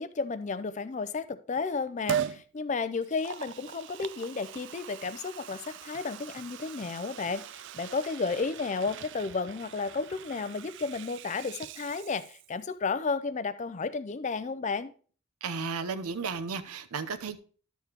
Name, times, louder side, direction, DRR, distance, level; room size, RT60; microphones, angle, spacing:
voice 1, 0.0-14.9, left 4 dB, 35° left, 0.4 m, -33 dB
Liquid, 2.1-2.4 3.0-12.6 13.0-13.1, right 9 dB, 55° right, 0.3 m, -40 dB
voice 2, 15.4-17.4, right 5 dB, 85° right, 0.7 m, -34 dB
11.5 x 6.8 x 2.9 m
head